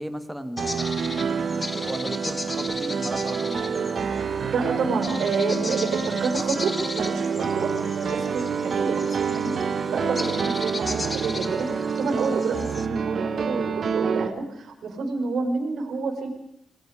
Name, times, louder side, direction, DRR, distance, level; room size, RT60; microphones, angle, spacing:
voice 1, 0.0-4.2 7.3-7.5, equal, 5° right, 8 dB, 1.9 m, -36 dB
sound 1, 0.6-12.9, left 2 dB, 25° left, 1.3 m, -36 dB
Piano, 0.6-14.3, right 6 dB, 55° right, 1.3 m, -27 dB
voice 2, 4.5-7.7 8.0-16.3, right 4 dB, 70° right, 4 dB, 4.8 m, -29 dB
Clapping, 7.0-7.2 8.4-8.6 9.8-9.9 10.2-10.5 11.6-11.7, left 1 dB, 55° left, 7.8 m, -42 dB
27.5 x 20.5 x 5.1 m, 0.78 s
cardioid pair, 115°, 0 cm